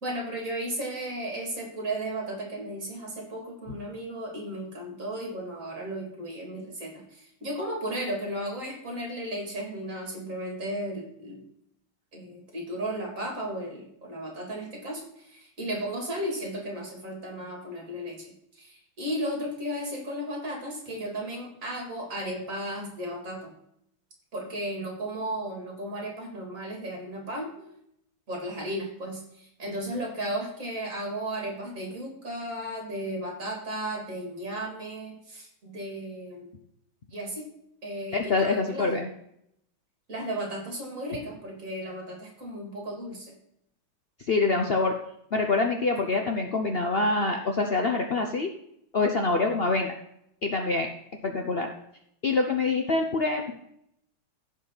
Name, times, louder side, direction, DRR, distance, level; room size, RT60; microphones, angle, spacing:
voice 1, 0.0-11.4 12.1-23.5 24.3-27.7 28.3-36.5 37.1-37.5 37.8-38.9 40.1-43.4, right 1 dB, 35° right, 0 dB, 3.3 m, -35 dB
voice 2, 38.1-39.1 44.3-44.9 45.3-48.5 48.9-49.9 50.4-50.9 51.2-51.7 52.2-53.5, left 3 dB, 80° left, 3 dB, 0.5 m, -25 dB
15.5 x 5.3 x 4.1 m, 0.75 s
omnidirectional pair, 2.3 m